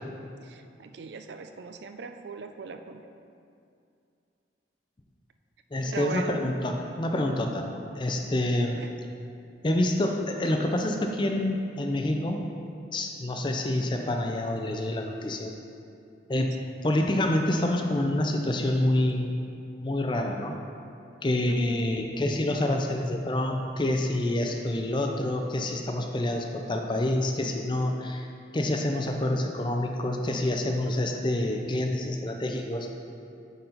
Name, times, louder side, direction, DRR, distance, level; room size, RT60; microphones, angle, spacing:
voice 1, 0.4-3.0 5.8-6.4 8.6-9.0 21.5-21.9, right 4 dB, 60° right, 7 dB, 0.3 m, -40 dB
voice 2, 5.7-7.7 7.9-8.8 9.6-12.5 12.9-15.5 16.3-16.5 16.8-19.3 19.8-20.6 21.2-28.3 28.5-32.9, left 1 dB, 25° left, 3 dB, 0.4 m, -27 dB
8.5 x 4.1 x 3.9 m, 2.5 s
head